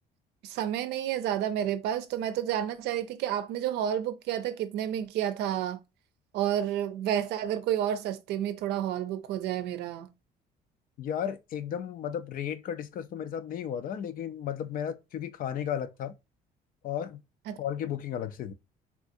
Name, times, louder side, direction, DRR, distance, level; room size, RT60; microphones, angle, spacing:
voice 1, 0.4-5.8 6.3-10.1 17.5-17.6, right 10 dB, 80° right, 0.5 m, -30 dB
voice 2, 11.0-16.1 16.8-17.2 17.6-18.5, left 9 dB, 55° left, 0.5 m, -34 dB
3.5 x 2.6 x 2.5 m
cardioid pair, 110°, 17 cm